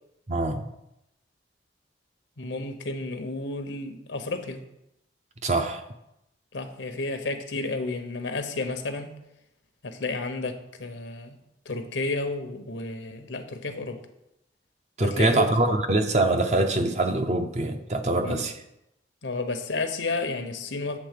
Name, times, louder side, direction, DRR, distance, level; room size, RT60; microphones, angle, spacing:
voice 1, 0.3-0.6 5.4-5.8 15.0-18.6, right 2 dB, 40° right, 7 dB, 0.6 m, -24 dB
voice 2, 2.4-4.6 6.5-9.2 9.8-11.4 11.7-14.0 15.0-15.5 18.2-18.4 19.2-21.0, left 3 dB, 80° left, 6 dB, 0.9 m, -31 dB
8.5 x 3.7 x 6.6 m, 0.85 s
head